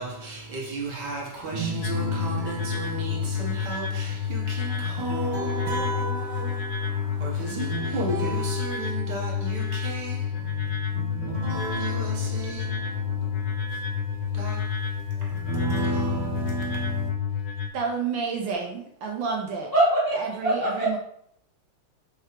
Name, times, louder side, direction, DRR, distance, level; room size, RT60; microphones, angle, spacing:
voice 1, 0.0-17.1, right 2 dB, 60° right, 1.4 m, -33 dB
sound 1, 1.8-17.7, left 7 dB, 80° left, 1.4 m, -29 dB
voice 2, 17.7-19.7 20.2-21.0, right 5 dB, 75° right, 1.2 m, -30 dB
voice 3, 19.7-21.0, right 1 dB, 45° left, 0.7 m, -23 dB
4.6 x 3.3 x 2.9 m
omnidirectional pair, 2.4 m